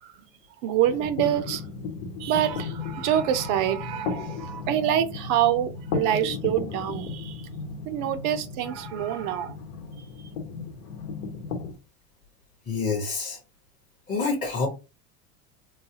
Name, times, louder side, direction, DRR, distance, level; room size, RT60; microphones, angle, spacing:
voice 1, 0.6-1.7 2.2-7.5 7.9-9.6, right 11 dB, 45° right, 0.5 m, -26 dB
sound 1, 0.8-11.7, left 5 dB, 75° left, 1.0 m, -35 dB
voice 2, 12.7-13.4 14.1-14.7, left 4 dB, 15° left, 0.7 m, -27 dB
3.9 x 2.3 x 2.7 m
supercardioid pair, 120°, 47 cm